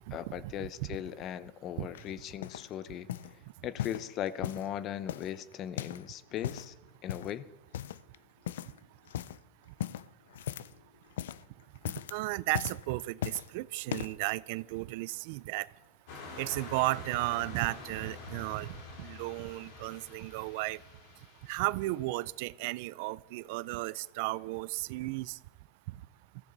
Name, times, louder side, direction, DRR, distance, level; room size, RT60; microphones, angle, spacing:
voice 1, 0.1-3.1 3.6-6.7 7.0-7.5, left 10 dB, 40° left, 0.7 m, -38 dB
Footsteps - Wood, 1.9-2.7 3.1-3.4 3.8-4.7 5.1-6.1 6.3-6.7 7.1-7.4 7.7-8.2 8.5-8.8 9.1-9.4 9.8-10.8 11.1-11.5 11.8-12.2 12.5-13.5 13.9-14.2 14.9-15.0, left 11 dB, 90° left, 0.4 m, -38 dB
voice 2, 12.1-15.7 16.4-18.7 19.0-20.8 21.5-25.4, right 20 dB, 65° right, 0.4 m, -34 dB
sound 1, 16.1-22.2, left 4 dB, 70° left, 4.6 m, -48 dB
21.5 x 14.5 x 4.0 m
supercardioid pair, 125°, 0 cm